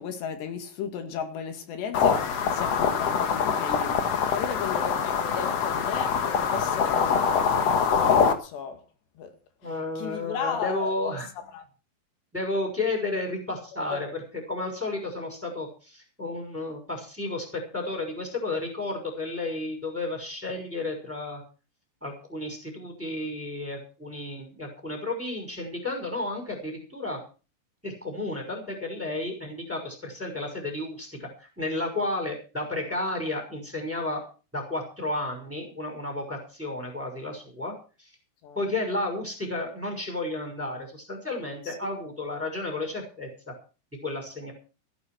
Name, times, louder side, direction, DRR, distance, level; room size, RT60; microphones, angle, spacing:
voice 1, 0.0-7.3 7.9-8.8 9.2-9.3 9.6-11.1 11.5-11.6 13.9-14.0 38.4-38.6 41.7-41.9, left 7 dB, 80° left, 4.1 m, -35 dB
sound 1, 1.9-8.3, left 6 dB, 60° left, 1.8 m, -24 dB
voice 2, 9.6-11.3 12.3-14.2 14.5-21.4 22.0-27.2 27.8-34.2 34.5-37.7 38.0-38.1 38.6-43.5 44.0-44.5, left 2 dB, 5° right, 5.4 m, -32 dB
15.0 x 9.7 x 6.2 m
omnidirectional pair, 4.9 m